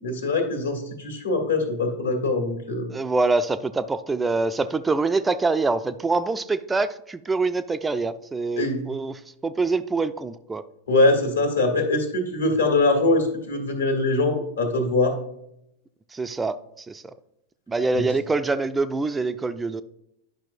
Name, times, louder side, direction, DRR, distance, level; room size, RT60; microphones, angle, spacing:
voice 1, 0.0-2.9 8.6-8.8 10.9-15.2, left 2 dB, 75° left, 3 dB, 1.6 m, -22 dB
voice 2, 2.9-9.1 9.4-10.6 16.1-17.0 17.7-19.8, right 3 dB, 10° right, 12 dB, 0.3 m, -25 dB
10.5 x 5.8 x 2.6 m, 0.79 s
figure-of-eight pair, 90°, 0 cm